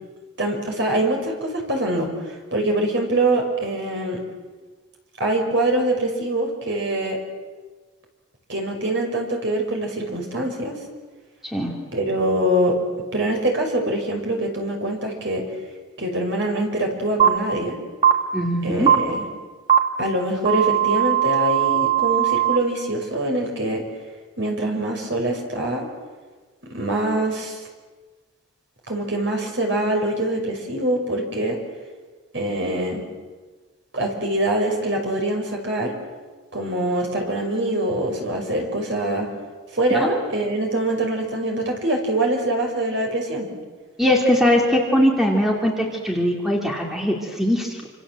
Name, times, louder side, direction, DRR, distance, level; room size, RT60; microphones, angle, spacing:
voice 1, 0.4-4.2 5.2-7.2 8.5-10.7 11.9-12.8 13.1-15.4 16.0-17.8 18.6-19.3 20.0-23.8 24.4-25.8 26.7-27.6 28.9-31.6 32.3-33.1 33.9-36.0 36.5-39.3 39.7-43.5, right 1 dB, 55° right, 2 dB, 5.9 m, -24 dB
voice 2, 11.4-11.8 18.3-18.9 39.9-40.1 44.0-47.9, equal, ahead, 0 dB, 2.8 m, -21 dB
sound 1, 17.2-17.3 18.0-18.1 18.9-19.0 19.7-19.8 20.4-22.6, right 11 dB, 25° right, 1.7 m, -18 dB
28.0 x 26.5 x 7.8 m, 1.4 s
head